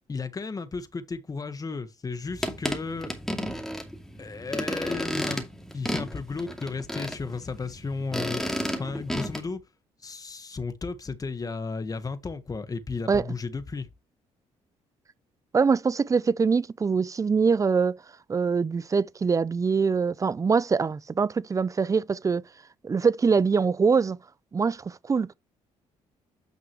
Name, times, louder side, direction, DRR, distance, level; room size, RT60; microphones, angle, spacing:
voice 1, 0.1-3.1 4.2-5.4 5.7-8.4 8.8-9.7 10.0-13.9, left 4 dB, 30° left, 1.4 m, -34 dB
sound 1, 2.3-9.4, equal, 5° left, 2.4 m, -33 dB
voice 2, 15.5-18.0 18.3-22.4 22.8-24.2 24.5-25.3, right 5 dB, 25° right, 0.5 m, -23 dB
9.2 x 6.0 x 3.0 m
cardioid pair, 85°, 13 cm